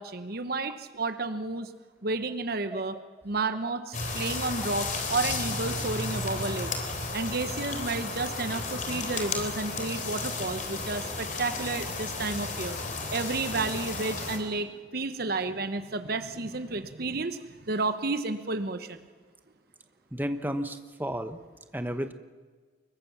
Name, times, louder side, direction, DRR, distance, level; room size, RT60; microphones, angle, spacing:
voice 1, 0.0-1.7 2.0-6.7 7.1-12.8 13.1-19.0, right 3 dB, 55° right, 10 dB, 1.1 m, -31 dB
sound 1, 3.9-14.4, left 3 dB, 45° left, 3.5 m, -33 dB
voice 2, 20.1-21.4 21.7-22.1, equal, 10° right, 8 dB, 1.1 m, -32 dB
24.0 x 22.0 x 7.3 m, 1.4 s
head